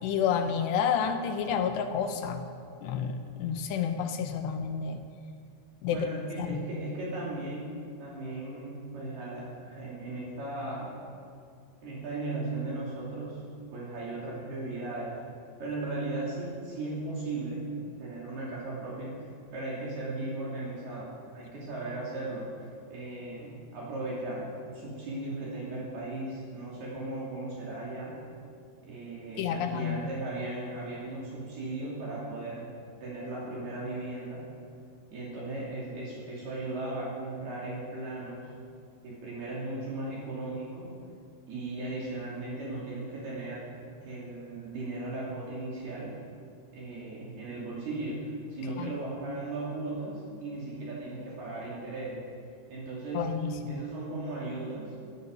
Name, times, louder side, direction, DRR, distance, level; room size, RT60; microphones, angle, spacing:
voice 1, 0.0-2.4 2.8-5.0 5.8-6.1 6.4-6.6 29.4-30.0 48.8-48.9 53.1-53.8, left 7 dB, 80° left, 7 dB, 2.5 m, -30 dB
voice 2, 5.9-10.9 11.8-13.4 13.7-15.1 15.6-17.7 18.0-28.1 28.8-32.7 33.0-34.4 35.1-38.5 39.0-40.9 41.5-43.7 44.0-46.1 46.7-52.3 52.7-53.4 53.7-54.9, right 2 dB, 55° right, -6 dB, 4.4 m, -37 dB
16.5 x 16.0 x 5.4 m, 2.3 s
omnidirectional pair, 5.8 m